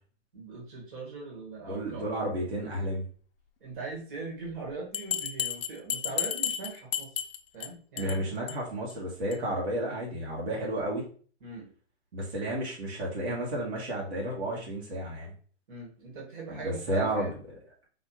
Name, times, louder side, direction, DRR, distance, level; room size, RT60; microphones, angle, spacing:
voice 1, 0.3-2.1 3.6-7.2 7.5-8.2 11.4-11.7 15.7-17.3, right 3 dB, 45° right, -3 dB, 1.9 m, -40 dB
voice 2, 1.7-3.0 8.0-11.1 12.1-15.3 16.5-17.3, right 1 dB, 70° right, -4 dB, 1.8 m, -32 dB
Bell, 4.9-7.7 8.0-8.2 8.5-8.6 8.9-9.0 9.3-9.4, left 9 dB, 60° left, 0.6 m, -32 dB
4.3 x 2.8 x 3.1 m, 0.43 s
hypercardioid pair, 155°, 34 cm